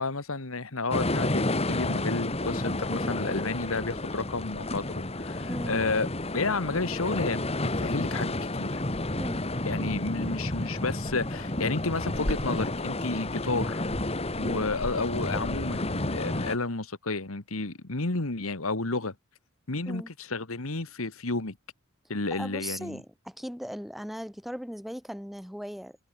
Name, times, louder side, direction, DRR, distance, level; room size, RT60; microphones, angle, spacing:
voice 1, 0.0-4.9 5.1-6.1 6.3-8.8 9.6-13.8 14.4-19.1 19.7-20.0 20.3-21.6 22.1-23.0, left 3 dB, 85° left, 1.9 m, -31 dB
sound 1, 0.9-16.6, left 2 dB, 30° left, 2.1 m, -31 dB
voice 2, 5.5-5.8 9.2-9.4 14.4-14.7 19.9-20.1 22.3-26.0, equal, ahead, 2.6 m, -38 dB
head